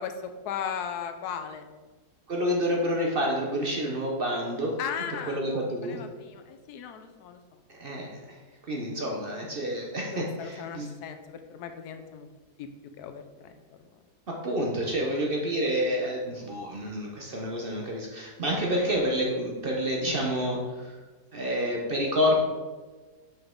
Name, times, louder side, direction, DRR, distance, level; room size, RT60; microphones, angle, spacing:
voice 1, 0.0-1.7 4.8-7.6 10.1-12.3 12.6-12.7 13.0-13.6, left 7 dB, 85° left, 7 dB, 1.1 m, -37 dB
voice 2, 2.3-4.8 5.3-6.0 7.7-8.4 8.7-10.9 14.3-21.0 21.3-22.4, equal, 45° right, -1 dB, 0.8 m, -28 dB
5.8 x 5.3 x 3.7 m, 1.3 s
omnidirectional pair, 1.7 m